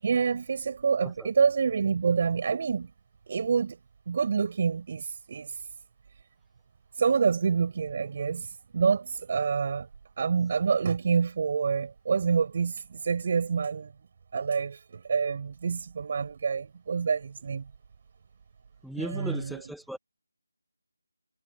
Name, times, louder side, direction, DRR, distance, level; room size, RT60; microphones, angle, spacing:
voice 1, 0.0-2.9 3.3-3.8 4.1-5.6 7.0-9.9 10.2-13.9 14.3-17.6 18.9-19.6, right 5 dB, 35° right, 6.4 m, -27 dB
voice 2, 18.8-20.0, equal, ahead, 1.7 m, -37 dB
figure-of-eight pair, 160°, 0 cm